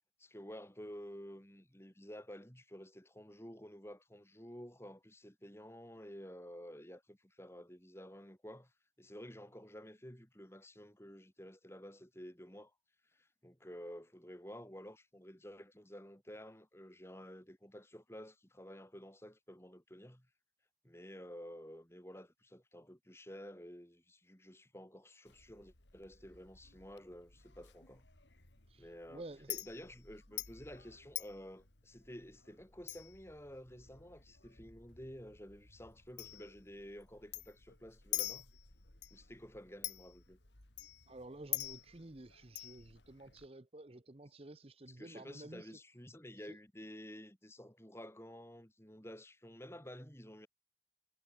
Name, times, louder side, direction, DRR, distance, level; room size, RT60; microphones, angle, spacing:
voice 1, 0.2-8.7 9.0-12.7 13.1-20.3 20.8-28.0 28.8-38.5 39.1-40.4 44.9-50.5, equal, 15° left, 5.8 m, -51 dB
Chink clink, 25.3-43.5, left 15 dB, 85° left, 3.0 m, -48 dB
voice 2, 28.7-29.5 41.1-45.8, right 2 dB, 35° right, 0.9 m, -52 dB
head